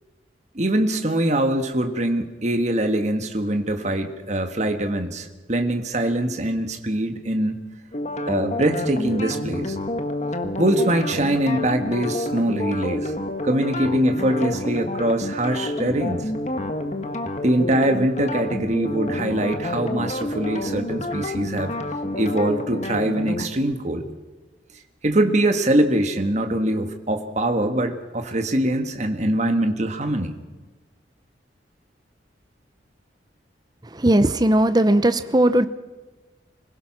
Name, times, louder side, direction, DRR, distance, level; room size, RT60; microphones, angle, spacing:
voice 1, 0.5-7.6 8.3-9.8 10.6-13.1 13.4-16.3 17.4-21.7 22.2-24.0 25.0-30.3, right 1 dB, 40° right, 6 dB, 1.6 m, -23 dB
sound 1, 7.9-23.4, left 1 dB, 40° left, 1.5 m, -29 dB
voice 2, 33.9-35.7, right 1 dB, 20° right, 12 dB, 0.8 m, -18 dB
26.0 x 16.5 x 6.1 m, 1.2 s
head